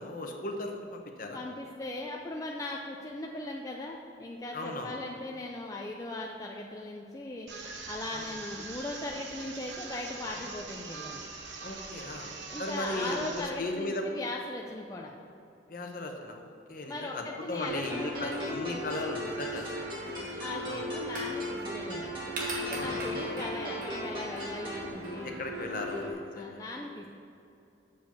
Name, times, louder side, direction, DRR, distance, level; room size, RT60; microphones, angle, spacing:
voice 1, 0.0-1.4 4.5-4.9 8.1-8.4 11.6-14.0 15.7-19.7 20.7-20.9 22.7-23.0 25.2-26.6, left 2 dB, 50° left, 3 dB, 0.9 m, -37 dB
voice 2, 1.3-7.5 7.9-11.3 12.5-15.1 16.9-18.6 20.0-22.1 22.6-25.3 26.4-27.1, left 2 dB, 20° left, -1 dB, 0.4 m, -39 dB
sound 1, 7.5-13.5, right 4 dB, 80° right, 1.1 m, -42 dB
sound 2, 17.6-26.1, equal, 45° right, 1.3 m, -37 dB
sound 3, 17.9-24.9, equal, 25° right, 2.0 m, -42 dB
7.4 x 5.0 x 7.2 m, 2.7 s
head